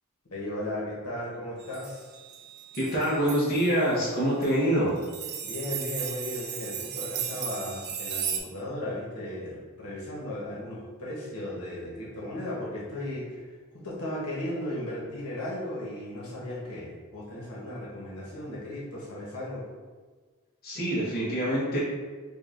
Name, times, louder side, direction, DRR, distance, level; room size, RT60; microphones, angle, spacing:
voice 1, 0.3-2.1 5.4-13.5 13.8-19.7, left 1 dB, 80° left, -6 dB, 1.2 m, -36 dB
sound 1, 1.6-3.8 4.4-4.6 5.0-8.4, right 8 dB, 50° right, 0.4 m, -36 dB
voice 2, 2.7-5.0 20.6-21.8, equal, 45° left, -7 dB, 0.9 m, -25 dB
5.1 x 2.4 x 2.5 m, 1.4 s
head